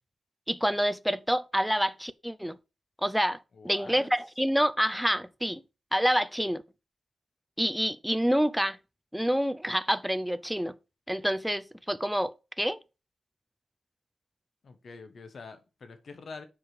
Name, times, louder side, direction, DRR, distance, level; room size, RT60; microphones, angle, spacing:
voice 1, 0.5-2.6 3.0-3.4 3.6-5.6 5.9-6.6 7.6-8.8 9.1-10.8 11.1-12.8, equal, ahead, 0.5 m, -27 dB
voice 2, 3.5-4.1 14.6-16.5, left 4 dB, 55° left, 1.2 m, -45 dB
7.2 x 5.2 x 4.9 m
wide cardioid pair, 155°, 0 cm